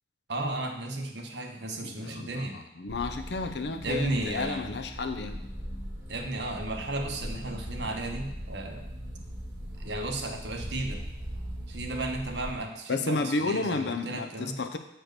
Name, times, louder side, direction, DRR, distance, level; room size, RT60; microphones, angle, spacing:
voice 1, 0.3-2.6 3.8-4.7 6.1-8.9 9.8-11.0 11.7-14.6, right 2 dB, 70° right, 3 dB, 1.1 m, -34 dB
voice 2, 1.8-5.4 12.9-14.8, left 3 dB, 70° left, 7 dB, 0.6 m, -32 dB
sound 1, 2.9-12.6, equal, 15° right, 2.7 m, -40 dB
6.5 x 4.4 x 6.6 m, 0.85 s
head